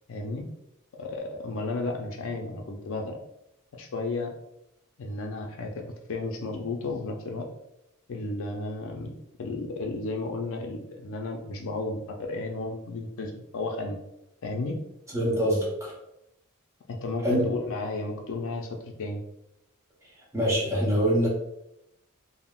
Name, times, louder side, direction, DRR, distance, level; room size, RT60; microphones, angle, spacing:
voice 1, 0.1-0.5 1.0-3.2 3.7-4.3 5.0-7.4 8.1-14.0 14.4-14.8 16.9-19.2, left 2 dB, 65° left, 2 dB, 0.4 m, -33 dB
voice 2, 15.1-15.9 17.2-17.4 20.3-21.3, equal, 15° right, -5 dB, 0.8 m, -24 dB
3.5 x 2.0 x 2.3 m, 0.82 s
head